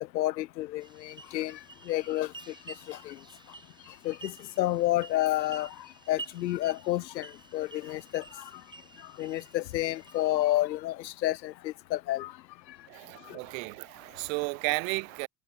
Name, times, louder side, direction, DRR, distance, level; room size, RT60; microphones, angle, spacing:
voice 1, 0.0-1.6 1.9-2.3 2.9-3.2 4.0-5.7 6.1-8.4 9.2-12.3 13.3-13.4, left 15 dB, 90° left, 0.6 m, -30 dB
sound 1, 0.8-10.6, right 3 dB, 10° right, 1.0 m, -50 dB
voice 2, 12.9-15.3, right 33 dB, 55° right, 0.5 m, -33 dB
hypercardioid pair, 85°, 50 cm